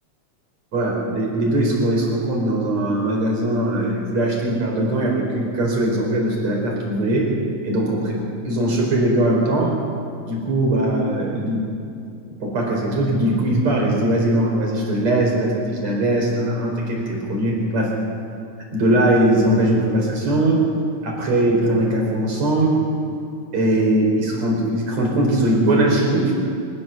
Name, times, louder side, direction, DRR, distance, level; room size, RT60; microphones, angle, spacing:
voice 1, 0.7-7.3 7.6-9.8 10.3-11.6 12.4-18.0 18.7-20.6 21.0-22.8 23.5-26.3, right 1 dB, 65° right, -1 dB, 5.6 m, -20 dB
24.0 x 15.5 x 7.1 m, 2.5 s
omnidirectional pair, 3.3 m